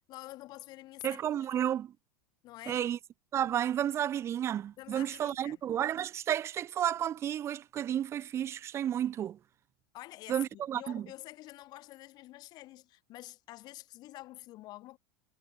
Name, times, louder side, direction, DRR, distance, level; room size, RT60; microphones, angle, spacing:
voice 1, 0.1-1.7 2.4-2.8 4.8-5.6 9.9-15.0, left 17 dB, 35° left, 6.2 m, -48 dB
voice 2, 1.0-1.9 2.7-3.0 3.3-9.4 10.3-11.1, right 10 dB, 20° right, 1.8 m, -32 dB
supercardioid pair, 180°, 12 cm